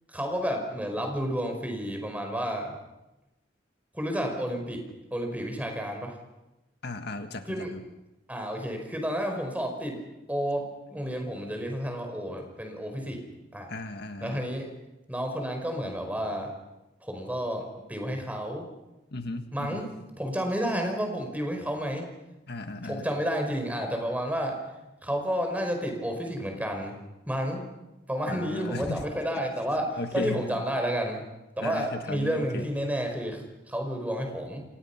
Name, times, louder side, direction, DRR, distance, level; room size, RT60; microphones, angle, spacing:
voice 1, 0.1-2.8 3.9-4.8 5.1-6.2 7.5-7.9 8.3-10.0 10.3-13.2 13.5-13.7 14.2-14.7 15.1-16.5 17.0-18.7 19.5-19.9 20.2-22.1 22.8-24.6 25.0-27.0 27.3-27.7 28.1-31.2 31.6-34.6, equal, 10° right, 4 dB, 5.0 m, -31 dB
voice 2, 6.8-7.7 13.7-14.4 19.1-19.9 22.5-23.1 28.3-29.0 30.0-30.5 31.6-32.7, left 2 dB, 60° left, 7 dB, 1.7 m, -35 dB
29.5 x 26.5 x 5.9 m, 0.99 s
head